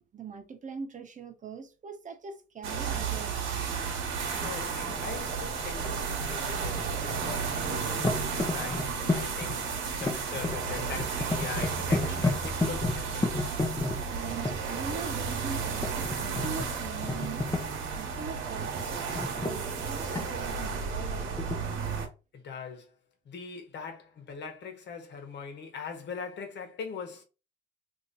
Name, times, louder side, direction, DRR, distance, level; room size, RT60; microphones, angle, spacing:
voice 1, 0.0-3.6 14.1-17.5 17.9-19.0 19.4-21.8, right 5 dB, 40° right, 0.9 m, -42 dB
sound 1, 2.6-22.1, right 5 dB, 80° right, 1.2 m, -33 dB
sound 2, 2.8-3.0 3.5-6.0 6.3-7.4 7.7-14.5 15.6-16.7 17.0-17.9 19.0-20.5 21.4-21.6, left 3 dB, 15° left, 0.7 m, -32 dB
voice 2, 4.3-9.7 10.0-13.3 22.3-22.9 23.2-27.2, left 5 dB, 60° left, 1.2 m, -41 dB
2.9 x 2.8 x 3.9 m
cardioid pair, 90°, 20 cm